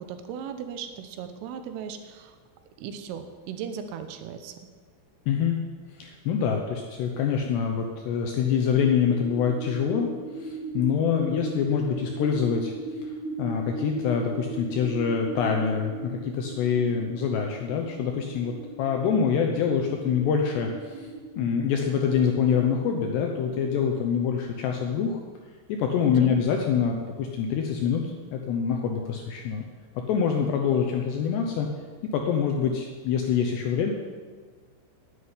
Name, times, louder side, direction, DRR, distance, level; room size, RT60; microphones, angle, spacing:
voice 1, 0.0-2.4 2.8-4.6 26.0-26.4, right 7 dB, 80° right, 8 dB, 3.4 m, -37 dB
voice 2, 5.3-5.6 5.9-12.7 13.0-21.1 21.4-25.2 25.7-29.6 30.1-31.7 32.1-33.9, left 7 dB, 75° left, 3 dB, 2.5 m, -25 dB
sound 1, 8.8-23.8, right 3 dB, 55° right, 4.0 m, -38 dB
11.0 x 8.5 x 9.6 m, 1.5 s
omnidirectional pair, 6.0 m